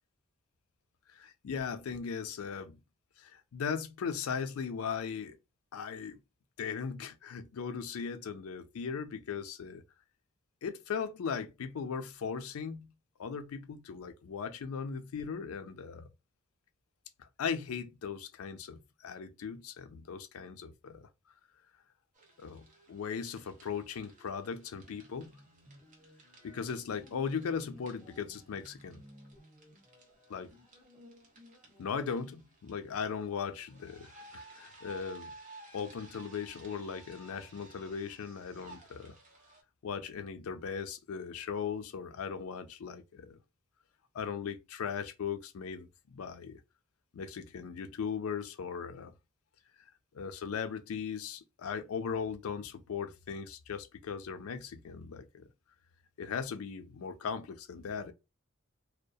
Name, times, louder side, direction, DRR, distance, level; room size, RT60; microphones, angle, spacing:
voice 1, 1.1-2.8 3.2-5.4 5.7-6.2 6.6-9.8 10.6-12.9 13.2-16.1 17.2-21.1 22.4-25.4 26.4-29.0 30.3-30.5 31.8-35.3 35.7-39.2 39.8-43.4 44.1-46.6 47.1-49.1 50.1-55.5 56.2-58.1, left 6 dB, 90° left, 0.4 m, -38 dB
sound 1, 22.1-39.6, right 2 dB, 40° right, 0.7 m, -56 dB
sound 2, 24.8-32.0, left 1 dB, 20° right, 1.2 m, -58 dB
2.2 x 2.1 x 2.6 m
head